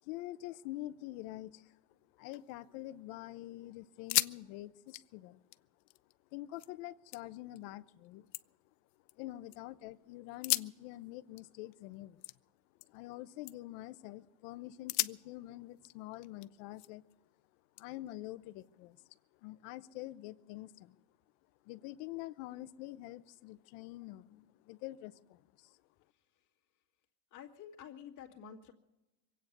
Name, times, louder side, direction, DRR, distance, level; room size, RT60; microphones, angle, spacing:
voice 1, 0.0-1.8 2.1-5.4 6.3-8.6 9.1-12.2 12.8-17.0 17.8-21.0 21.6-25.8, left 16 dB, 55° left, 14 dB, 0.9 m, -46 dB
sound 1, 2.1-3.1 3.5-3.6 3.9-4.4 4.7-6.7 7.1-7.6 8.0-9.6 10.3-13.1 13.4-13.8 14.3-14.4 14.9-17.1 17.8-18.9, left 19 dB, 85° left, 0.7 m, -39 dB
voice 2, 27.3-28.7, left 8 dB, 35° left, -1 dB, 2.1 m, -50 dB
23.5 x 9.0 x 6.7 m, 1.0 s
supercardioid pair, 135°, 49 cm